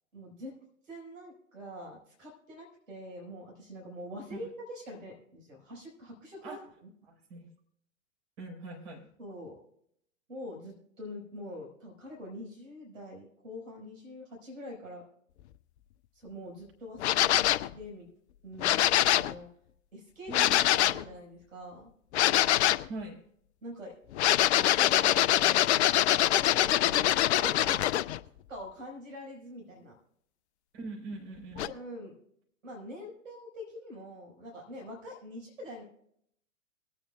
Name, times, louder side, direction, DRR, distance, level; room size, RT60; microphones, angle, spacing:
voice 1, 0.1-0.5 0.8-6.9 9.2-9.6 10.3-15.0 16.1-18.1 18.4-19.5 19.9-21.9 23.6-23.9 24.6-27.9 28.5-30.0 31.6-32.2 32.6-35.8, left 1 dB, 75° right, -1 dB, 5.0 m, -44 dB
voice 2, 7.1-7.5 8.4-9.1 20.3-20.8 22.9-23.2 30.7-31.7, right 3 dB, 50° right, 0 dB, 4.1 m, -42 dB
sound 1, 17.0-17.7 18.6-19.3 20.3-21.0 22.1-22.9 24.1-28.2 31.6-31.7, left 13 dB, 55° left, 0.6 m, -24 dB
23.0 x 8.8 x 2.3 m, 0.69 s
figure-of-eight pair, 105°, 39 cm